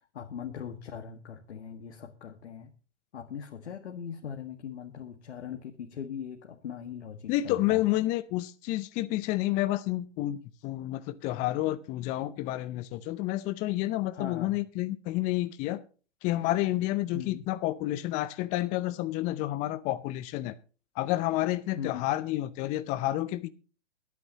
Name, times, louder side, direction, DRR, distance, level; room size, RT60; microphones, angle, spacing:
voice 1, 0.1-2.7 3.1-7.9 14.1-14.6 17.1-17.5 21.8-22.1, left 8 dB, 65° left, 1.8 m, -40 dB
voice 2, 7.3-15.8 16.2-20.5 21.0-23.5, left 16 dB, 20° left, 0.6 m, -30 dB
23.0 x 9.3 x 2.9 m
figure-of-eight pair, 120°, 36 cm